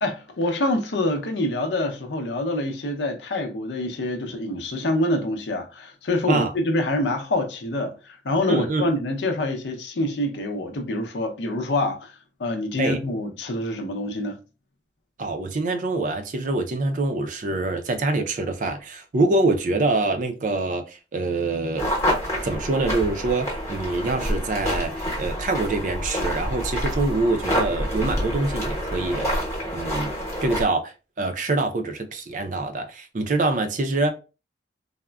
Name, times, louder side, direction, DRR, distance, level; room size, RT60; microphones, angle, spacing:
voice 1, 0.0-12.1 12.4-14.4, left 1 dB, 80° left, 0.6 m, -26 dB
voice 2, 8.5-8.9 12.8-13.0 15.2-21.9 22.4-29.4 29.7-30.1 30.4-34.1, right 2 dB, 45° right, 0.4 m, -25 dB
sound 1, 21.8-30.6, equal, 15° left, 0.9 m, -27 dB
3.5 x 2.1 x 2.2 m
head